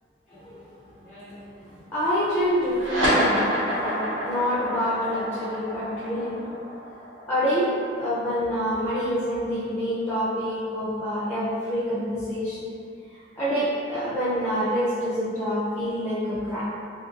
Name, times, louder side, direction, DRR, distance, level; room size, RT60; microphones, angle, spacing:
voice 1, 0.3-6.6 7.3-7.7 8.0-12.7 13.1-16.6, equal, 10° left, -10 dB, 0.5 m, -27 dB
sound 1, 2.7-9.5, equal, 70° right, 1.1 m, -28 dB
2.8 x 2.5 x 2.8 m, 2.3 s
head